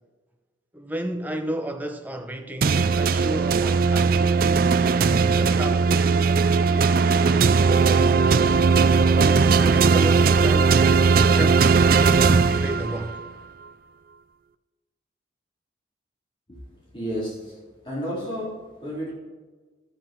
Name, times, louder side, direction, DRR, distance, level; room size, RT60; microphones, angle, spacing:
voice 1, 0.7-4.3 4.9-8.6 9.1-10.9 11.3-13.2, right 1 dB, 10° right, 0.8 m, -33 dB
sound 1, 2.6-13.2, right 5 dB, 50° right, 0.4 m, -18 dB
voice 2, 16.9-17.6 17.8-19.1, equal, 25° left, 3.9 m, -31 dB
12.5 x 7.9 x 4.6 m
head